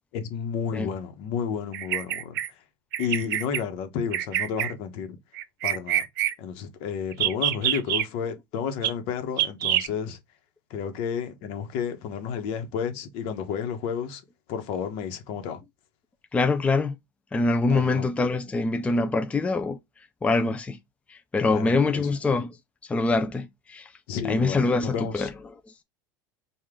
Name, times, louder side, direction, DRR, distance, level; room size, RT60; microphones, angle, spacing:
voice 1, 0.1-2.4 3.0-5.2 5.6-6.0 6.4-10.2 10.7-14.2 14.5-15.6 17.7-18.1 21.5-22.1 24.1-25.3, left 7 dB, 65° left, 1.0 m, -31 dB
Bird vocalization bird call bird song, 1.7-2.5 2.9-3.6 4.1-4.7 5.3-6.3 7.1-8.0 8.8-8.9 9.4-9.9, right 12 dB, 85° right, 0.6 m, -26 dB
voice 2, 16.3-16.9 17.3-19.8 20.2-20.8 21.1-22.5 22.9-23.9 24.3-25.3, left 3 dB, 10° left, 0.4 m, -24 dB
4.9 x 2.5 x 3.6 m
supercardioid pair, 110°, 10 cm